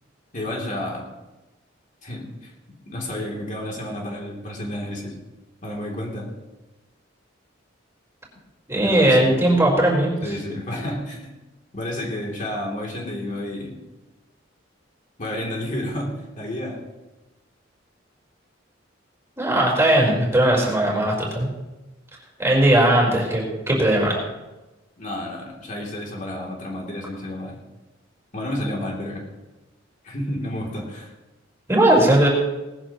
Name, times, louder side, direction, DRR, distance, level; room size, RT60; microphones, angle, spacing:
voice 1, 0.3-1.1 2.0-2.5 2.9-5.1 5.6-6.3 8.8-9.6 10.2-11.3 11.7-13.8 15.2-16.8 25.0-27.6 28.3-29.3 30.0-31.1, left 1 dB, 40° left, -2 dB, 3.0 m, -31 dB
voice 2, 8.7-10.3 19.4-21.5 22.4-24.2 31.7-32.3, right 1 dB, 15° right, -3 dB, 4.2 m, -18 dB
19.0 x 14.5 x 3.0 m, 1.1 s
head